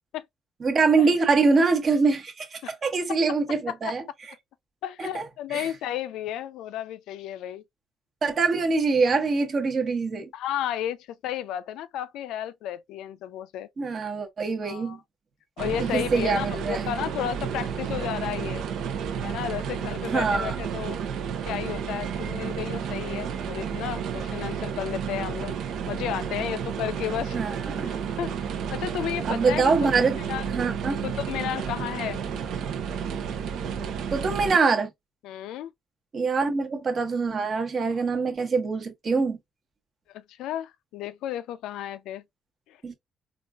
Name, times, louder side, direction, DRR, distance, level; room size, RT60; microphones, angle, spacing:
voice 1, 0.6-4.0 5.0-5.2 5.5-5.7 8.2-10.3 13.8-15.0 15.8-16.9 20.1-20.6 27.3-27.9 29.2-30.2 30.5-31.0 34.1-34.9 36.1-39.4 42.8-42.9, right 4 dB, 45° right, 1.0 m, -24 dB
voice 2, 4.8-7.6 10.3-13.7 14.6-15.0 15.6-18.6 19.2-21.0 21.5-25.6 25.9-27.4 27.8-28.3 28.7-29.9 30.3-30.4 31.0-32.2 35.2-35.7 40.1-42.2 42.7-42.8, left 11 dB, 90° left, 0.4 m, -33 dB
sound 1, 15.6-34.6, right 7 dB, 80° right, 0.7 m, -31 dB
4.0 x 2.4 x 2.3 m
cardioid pair, 90°, 0 cm